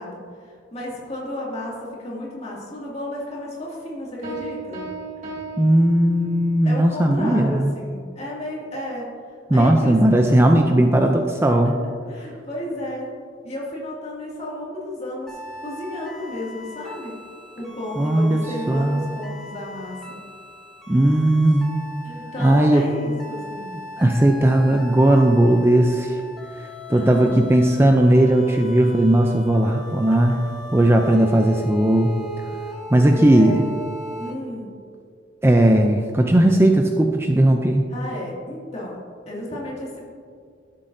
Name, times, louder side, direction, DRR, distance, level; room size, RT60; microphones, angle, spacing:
voice 1, 0.0-4.9 6.6-9.1 9.5-10.0 12.1-13.1 13.4-17.1 17.6-20.2 22.0-23.7 26.0-26.1 26.7-27.5 29.8-30.0 31.0-31.2 33.1-33.7 34.2-34.8 37.9-39.0 39.3-40.1, left 1 dB, 35° left, -5 dB, 2.3 m, -33 dB
sound 1, 4.2-6.6, right 4 dB, 40° right, 2.1 m, -35 dB
voice 2, 5.6-7.7 9.5-11.8 18.0-18.4 18.7-19.1 20.9-21.8 22.4-22.8 24.0-26.2 26.9-30.4 30.7-32.1 32.9-33.6 35.4-37.8, right 1 dB, 15° right, 3 dB, 0.4 m, -17 dB
sound 2, 15.3-34.3, equal, ahead, 1.2 m, -38 dB
13.0 x 7.6 x 2.7 m, 2.2 s
head